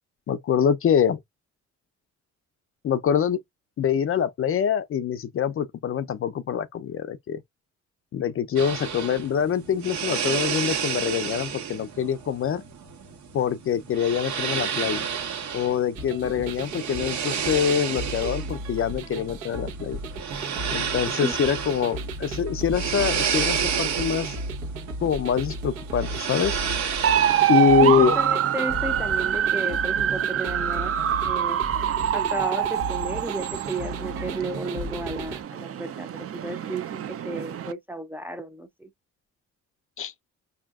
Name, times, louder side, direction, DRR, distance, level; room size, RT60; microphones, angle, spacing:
voice 1, 0.3-1.2 2.8-3.4 3.8-7.4 8.1-12.6 13.3-15.1 15.5-20.0 20.7-24.4 25.0-26.6 27.5-28.1 40.0-40.1, left 8 dB, 45° left, 0.5 m, -24 dB
sound 1, 8.6-27.9, right 7 dB, 70° right, 1.3 m, -31 dB
sound 2, 15.9-35.4, right 2 dB, 90° right, 1.1 m, -35 dB
sound 3, 27.0-37.7, right 10 dB, 50° right, 0.6 m, -25 dB
voice 2, 27.8-31.6 32.1-38.9, right 1 dB, 5° right, 0.6 m, -33 dB
4.9 x 2.7 x 2.3 m
cardioid pair, 90°, 30 cm